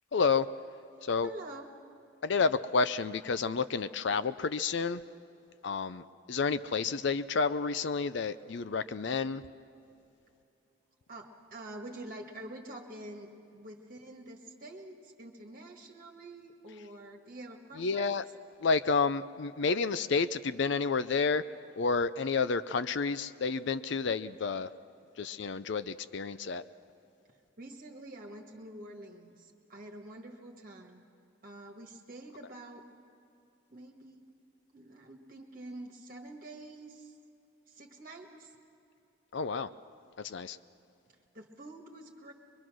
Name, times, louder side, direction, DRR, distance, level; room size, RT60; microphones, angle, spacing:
voice 1, 0.1-0.5 1.0-1.3 2.2-5.0 5.6-6.0 6.3-9.4 17.8-18.2 18.6-21.4 21.8-24.7 25.2-26.6 39.3-39.7 40.2-40.6, left 4 dB, 60° left, 13 dB, 0.5 m, -30 dB
voice 2, 1.2-1.7 11.1-18.1 27.6-31.0 31.4-32.8 33.7-34.3 34.7-37.2 37.7-38.5 41.3-42.3, right 1 dB, 45° right, 1 dB, 1.5 m, -47 dB
24.0 x 22.5 x 6.2 m, 2.7 s
head